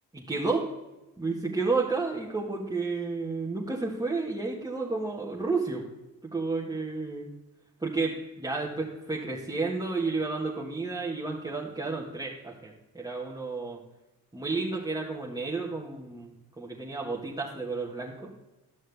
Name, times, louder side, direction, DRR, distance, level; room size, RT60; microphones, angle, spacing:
voice 1, 0.1-0.6 1.2-5.8 6.3-7.3 7.8-13.8 14.3-16.3 16.6-18.3, right 3 dB, 10° right, -4 dB, 1.7 m, -31 dB
12.5 x 6.3 x 3.5 m, 1.0 s
supercardioid pair, 60°, 37 cm